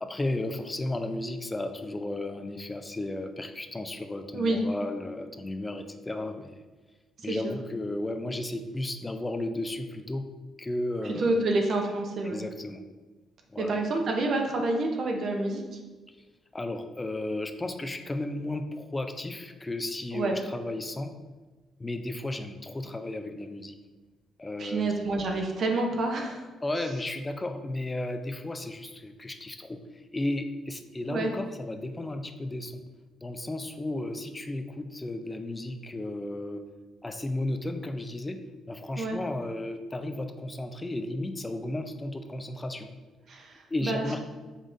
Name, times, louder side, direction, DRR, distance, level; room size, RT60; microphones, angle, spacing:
voice 1, 0.0-6.6 7.2-10.3 10.6-11.4 12.2-12.8 13.5-13.8 16.5-21.1 21.8-23.8 24.4-24.9 26.6-32.8 33.2-36.6 37.0-38.4 38.7-42.9 43.7-44.2, left 1 dB, 20° left, 7 dB, 0.4 m, -34 dB
voice 2, 11.0-12.4 13.6-15.6 20.1-20.4 24.6-26.4 31.1-31.3 39.0-39.2 43.3-44.0, right 2 dB, 60° right, 2 dB, 0.7 m, -28 dB
5.3 x 3.6 x 2.6 m, 1.3 s
cardioid pair, 90°, 0 cm